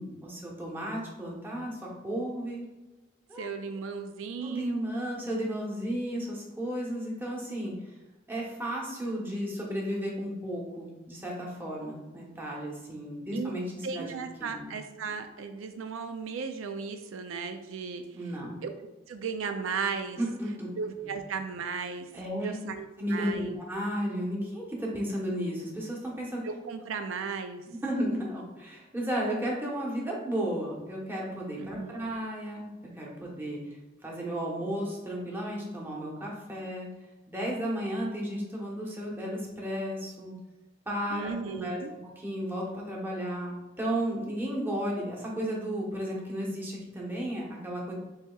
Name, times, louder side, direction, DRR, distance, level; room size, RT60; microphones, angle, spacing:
voice 1, 0.0-2.7 3.3-3.5 4.4-7.9 8.3-14.1 14.4-14.7 18.1-18.6 20.2-20.7 22.1-22.5 23.0-26.4 27.7-32.7 33.0-33.8 34.0-36.9 37.3-40.3 40.9-41.8 42.2-47.9, equal, 10° right, -4 dB, 1.0 m, -33 dB
voice 2, 3.4-4.9 13.3-13.5 13.8-18.0 18.6-18.7 19.1-20.2 20.8-22.1 22.4-23.6 26.4-27.6 31.6-32.0 41.1-41.9, right 5 dB, 80° right, 7 dB, 0.4 m, -35 dB
7.9 x 2.8 x 2.3 m, 1.1 s
head